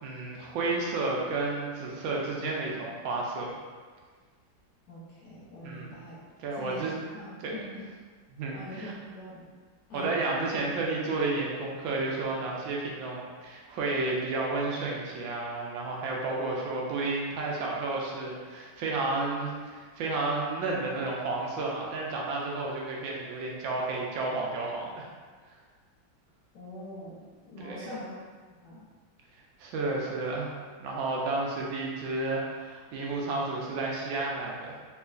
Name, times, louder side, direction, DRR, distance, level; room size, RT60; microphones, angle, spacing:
voice 1, 0.0-3.5 5.6-6.0 6.4-7.0 7.4-7.6 8.3-8.9 9.9-25.1 27.6-27.9 29.6-30.5 30.8-34.8, right 3 dB, 80° right, -3 dB, 1.4 m, -31 dB
voice 2, 4.9-6.2 6.5-7.7 8.5-9.5 9.9-10.1 26.5-27.2 27.4-28.1 28.6-28.8, equal, 65° left, -8 dB, 1.0 m, -43 dB
3.5 x 3.1 x 2.4 m, 1.5 s
omnidirectional pair, 2.2 m